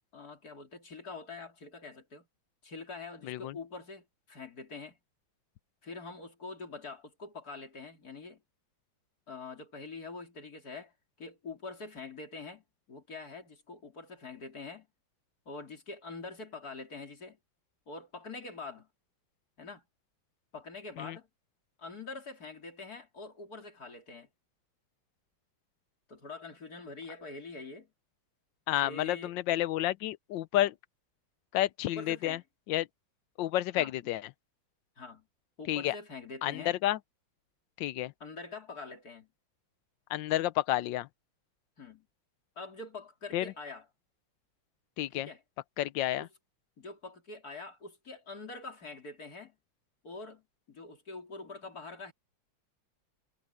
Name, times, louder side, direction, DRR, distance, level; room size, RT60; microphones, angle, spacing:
voice 1, 0.0-2.3 2.6-5.0 5.8-8.4 9.3-14.9 15.5-17.4 17.9-18.9 19.6-19.8 20.5-21.3 21.8-24.3 26.1-27.9 28.8-29.4 31.8-32.4 33.7-34.1 35.0-35.3 35.6-36.8 38.2-39.3 41.8-42.1 42.6-43.9 45.1-45.4 46.2-46.3 46.8-49.6 50.0-52.1, left 3 dB, 50° left, 3.6 m, -45 dB
voice 2, 28.7-30.7 31.5-32.4 32.7-32.9 33.4-34.2 35.7-35.9 36.4-37.0 37.8-38.1 40.1-41.1 43.3-43.4 45.0-45.3 45.8-46.3, left 14 dB, 75° left, 1.3 m, -30 dB
omnidirectional pair, 2.1 m